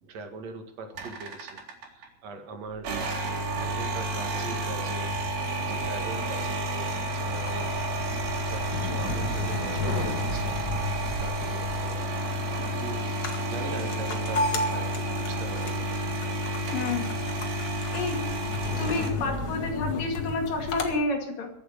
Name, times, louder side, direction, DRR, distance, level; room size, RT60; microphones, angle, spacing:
voice 1, 0.0-1.6 1.9-2.9 3.6-5.1 5.5-8.1 8.4-10.6 11.2-12.1 12.6-16.0, right 3 dB, 50° right, 5 dB, 2.8 m, -41 dB
sound 1, 0.9-2.1 2.7-19.1, right 1 dB, 80° right, 4.5 m, -30 dB
sound 2, 7.2-20.9, left 2 dB, 45° left, 1.3 m, -35 dB
voice 2, 16.7-17.1 17.8-21.5, left 3 dB, 65° left, 3 dB, 3.8 m, -30 dB
22.5 x 7.9 x 6.7 m, 0.73 s
omnidirectional pair, 4.3 m